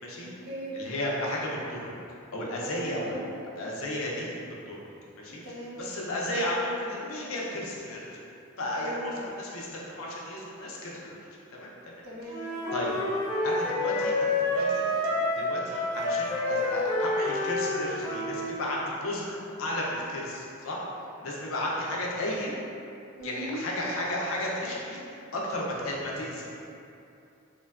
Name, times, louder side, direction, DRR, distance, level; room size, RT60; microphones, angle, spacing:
voice 1, 0.2-0.8 2.6-3.2 5.3-5.8 8.8-9.1 12.0-12.7 23.2-23.6, right 1 dB, 85° right, -6 dB, 0.6 m, -39 dB
voice 2, 0.7-2.0 2.3-3.3 3.6-4.3 4.7-4.8 5.2-8.2 8.6-11.2 11.5-11.7 12.3-13.0 13.4-20.8 21.2-22.6 23.2-26.5, left 1 dB, 70° left, -4 dB, 0.5 m, -33 dB
Wind instrument woodwind instrument, 12.3-18.5, left 2 dB, 15° left, 0.6 m, -28 dB
3.1 x 2.1 x 2.3 m, 2.6 s
head